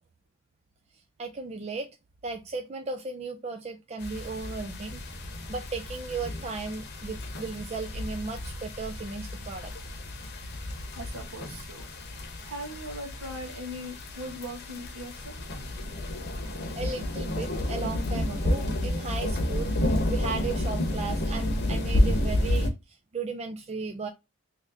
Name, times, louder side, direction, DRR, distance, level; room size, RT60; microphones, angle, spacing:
voice 1, 1.2-1.9 2.2-5.1 5.5-9.7 16.7-24.1, right 4 dB, 30° right, 0.3 m, -36 dB
sound 1, 4.0-22.7, left 1 dB, 45° left, 0.9 m, -31 dB
voice 2, 10.9-11.9 12.4-15.6, equal, 65° right, 1.2 m, -40 dB
2.9 x 2.8 x 3.7 m
head